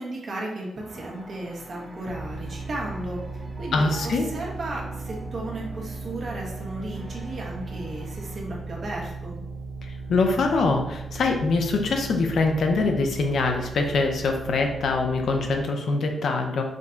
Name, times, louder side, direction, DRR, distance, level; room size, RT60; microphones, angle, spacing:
voice 1, 0.0-9.4, right 1 dB, 50° right, -3 dB, 1.3 m, -35 dB
sound 1, 0.8-8.4, right 2 dB, 10° right, 0.9 m, -44 dB
sound 2, 2.0-15.6, right 4 dB, 85° right, 0.5 m, -37 dB
voice 2, 3.7-4.3 9.8-16.7, left 3 dB, 70° left, 3 dB, 0.7 m, -24 dB
5.1 x 2.3 x 3.9 m, 0.89 s
cardioid pair, 95°, 0 cm